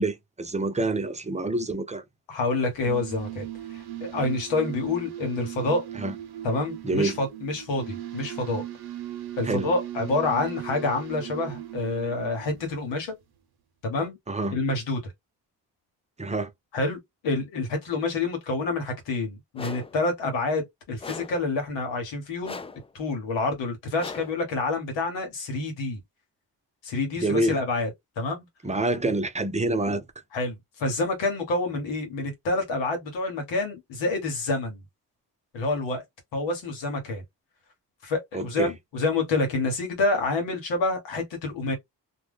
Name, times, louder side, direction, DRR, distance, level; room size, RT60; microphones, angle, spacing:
voice 1, 0.0-2.0 6.0-6.1 6.8-7.1 9.5-9.7 14.3-14.6 16.2-16.5 27.2-27.6 28.6-30.0 38.3-38.7, right 2 dB, 15° right, 0.7 m, -27 dB
voice 2, 2.3-3.4 3.7-5.9 6.4-8.6 9.4-13.1 13.8-14.2 14.5-15.1 16.7-17.0 17.2-22.6 22.9-26.0 26.8-27.9 28.2-28.5 30.3-34.8 35.5-36.0 36.3-37.2 38.0-41.8, left 2 dB, 90° left, 1.1 m, -28 dB
sound 1, 2.6-13.1, right 12 dB, 60° right, 0.8 m, -38 dB
sound 2, 19.5-20.0 21.0-21.5 22.4-22.9 24.0-24.4, left 4 dB, 15° left, 0.3 m, -39 dB
2.2 x 2.2 x 3.4 m
supercardioid pair, 45°, 43 cm